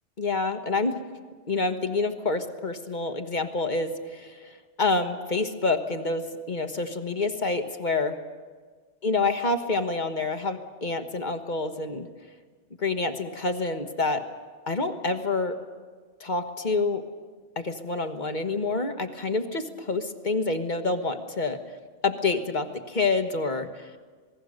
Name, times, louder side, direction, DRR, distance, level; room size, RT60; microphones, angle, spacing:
voice 1, 0.2-1.0 1.5-8.2 9.0-12.1 12.8-14.2 14.7-15.6 16.2-17.0 17.5-21.6 22.0-23.9, left 3 dB, 40° left, 7 dB, 1.4 m, -27 dB
27.5 x 20.0 x 6.5 m, 1.5 s
omnidirectional pair, 1.2 m